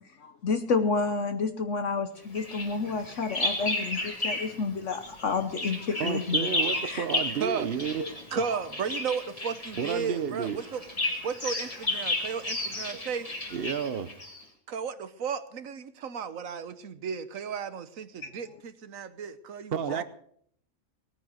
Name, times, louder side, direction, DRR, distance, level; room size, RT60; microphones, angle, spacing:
voice 1, 0.2-7.0 18.2-18.3, left 4 dB, 60° left, 7 dB, 1.3 m, -30 dB
Bird vocalization bird call bird song, 2.3-4.6 4.9-14.4, left 2 dB, 25° left, 2.2 m, -33 dB
voice 2, 6.0-8.0 9.8-10.6 13.5-14.1 19.7-20.0, right 7 dB, 45° right, 13 dB, 1.0 m, -31 dB
voice 3, 7.4-7.7 8.3-10.8 11.2-13.3 14.7-20.0, right 6 dB, 70° right, 13 dB, 1.4 m, -34 dB
19.5 x 9.2 x 6.4 m, 0.64 s
omnidirectional pair, 1.5 m